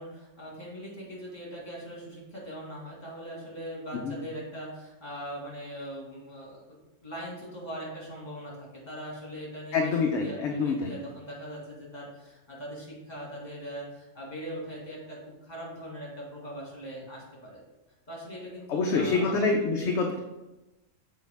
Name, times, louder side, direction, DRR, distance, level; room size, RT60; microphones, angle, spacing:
voice 1, 0.0-6.6 7.0-17.6 18.1-19.5 19.8-19.9, equal, 35° left, -3 dB, 2.1 m, -41 dB
voice 2, 9.7-10.9 18.7-20.2, left 4 dB, 70° left, 1 dB, 0.9 m, -26 dB
6.4 x 4.7 x 3.5 m, 1.0 s
omnidirectional pair, 1.3 m